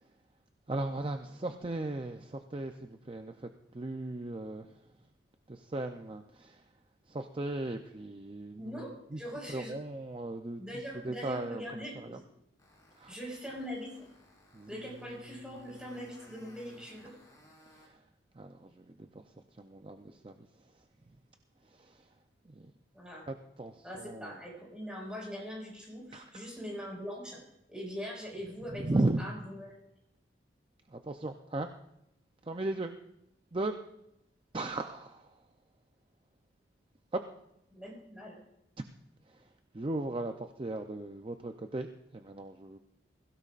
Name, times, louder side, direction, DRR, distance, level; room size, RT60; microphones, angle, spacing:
voice 1, 0.7-3.5 3.7-4.7 5.5-6.6 7.1-8.8 9.1-9.2 9.5-10.6 11.0-12.2 13.0-13.1 14.5-14.8 15.5-15.8 17.8-17.9 18.4-19.2 19.6-20.5 21.7-22.0 22.5-22.7 23.3-24.3 26.1-26.4 28.8-29.2 30.9-31.7 32.4-32.9 33.5-33.8 34.5-35.3 37.1-37.2 39.7-41.9 42.1-42.8, right 2 dB, 30° right, 6 dB, 0.5 m, -36 dB
voice 2, 8.6-9.8 10.6-12.2 13.1-13.9 14.7-17.1 22.9-23.2 23.8-27.4 27.7-29.7 37.7-38.4, equal, 5° right, -3 dB, 5.2 m, -42 dB
sound 1, 12.6-17.9, left 1 dB, 20° left, 4.7 m, -61 dB
21.5 x 16.5 x 2.5 m, 0.81 s
head